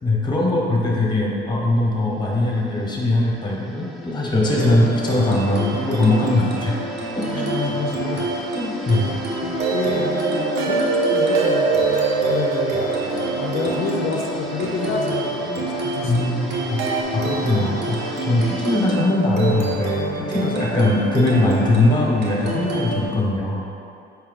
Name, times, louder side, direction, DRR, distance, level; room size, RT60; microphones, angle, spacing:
voice 1, 0.0-6.8 7.2-7.7 8.5-9.1 16.0-16.9 17.1-23.6, left 2 dB, 20° left, -2 dB, 0.9 m, -21 dB
sound 1, 1.3-18.9, left 1 dB, ahead, 0.6 m, -39 dB
sound 2, 4.4-23.1, right 2 dB, 60° right, 0.9 m, -27 dB
voice 2, 7.5-8.4 8.9-11.9 12.3-12.9 13.4-16.6, left 4 dB, 85° left, 0 dB, 0.5 m, -28 dB
sound 3, 9.6-15.6 16.8-17.0, right 4 dB, 90° right, 0.5 m, -24 dB
4.5 x 2.8 x 3.8 m, 2.5 s
cardioid pair, 90°, 20 cm